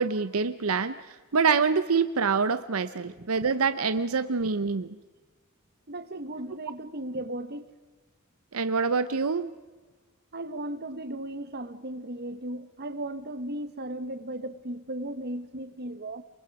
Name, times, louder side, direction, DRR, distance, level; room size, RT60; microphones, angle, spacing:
voice 1, 0.0-4.9 8.5-9.5, right 5 dB, 85° right, 0.8 m, -26 dB
voice 2, 5.9-7.7 10.3-16.2, right 1 dB, 50° right, 1.4 m, -36 dB
29.5 x 22.0 x 4.9 m
head